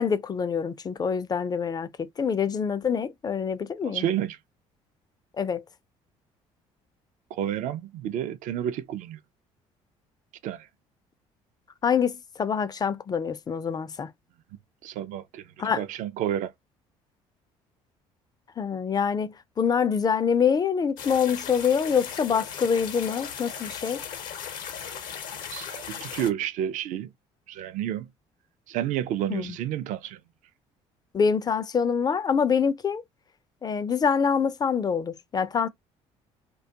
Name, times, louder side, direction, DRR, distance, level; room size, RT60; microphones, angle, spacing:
voice 1, 0.0-4.1 5.4-5.6 11.8-14.1 15.6-15.8 18.6-24.0 29.3-29.6 31.1-33.0 33.6-35.7, left 6 dB, 30° left, 0.3 m, -25 dB
voice 2, 3.8-4.4 7.3-9.2 10.4-10.7 14.8-15.5 15.7-16.5 24.9-25.0 25.5-27.1 27.5-28.1 28.7-30.2, right 10 dB, 60° right, 0.4 m, -30 dB
sound 1, 21.0-26.3, left 8 dB, 70° left, 0.6 m, -37 dB
2.2 x 2.2 x 2.7 m
hypercardioid pair, 60°, 14 cm